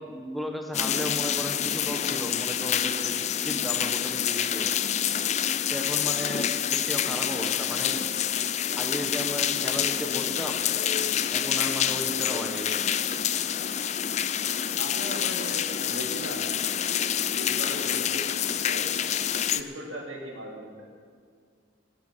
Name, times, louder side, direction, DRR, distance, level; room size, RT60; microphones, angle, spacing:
voice 1, 0.0-3.2 3.4-4.7 5.7-8.0 8.7-10.6 11.3-12.9, equal, ahead, 3 dB, 1.1 m, -35 dB
sound 1, 0.7-19.6, left 9 dB, 35° left, 0.4 m, -27 dB
sound 2, 8.1-15.0 15.3-16.1 16.3-16.5 17.0-17.1 17.4-17.5, left 5 dB, 75° left, 2.7 m, -53 dB
voice 2, 14.8-16.9 17.3-18.8 19.5-20.9, equal, 90° right, -1 dB, 3.0 m, -39 dB
17.5 x 8.6 x 7.4 m, 2.1 s
head